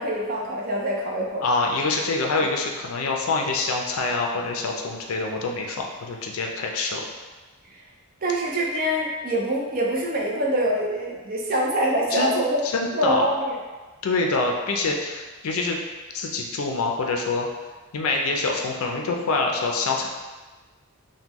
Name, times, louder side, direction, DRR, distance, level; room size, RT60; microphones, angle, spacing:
voice 1, 0.0-1.5 7.7-7.8 8.2-12.6 12.9-13.6, right 1 dB, 40° right, -2 dB, 0.5 m, -25 dB
voice 2, 1.4-7.0 12.1-12.4 12.6-13.2 14.0-15.8 16.1-17.5 17.9-20.1, left 3 dB, 75° left, 1 dB, 0.4 m, -25 dB
3.6 x 2.2 x 2.9 m, 1.3 s
head